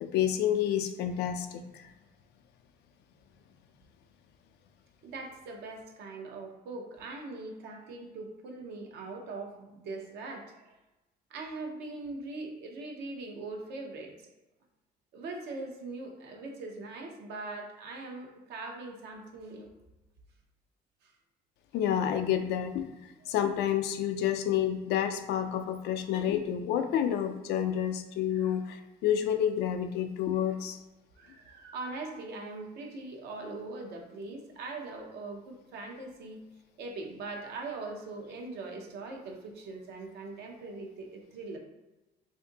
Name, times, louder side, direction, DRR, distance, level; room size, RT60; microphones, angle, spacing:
voice 1, 0.0-1.8 21.7-22.9 23.3-30.8, left 10 dB, 75° left, 6 dB, 0.4 m, -29 dB
voice 2, 5.0-10.7 11.3-14.1 15.1-19.7 21.0-21.1 28.3-28.6 30.5-30.6 31.2-36.4 36.8-41.6, right 3 dB, 75° right, 2 dB, 0.7 m, -41 dB
2.6 x 2.5 x 3.8 m, 1.0 s
cardioid pair, 110°, 17 cm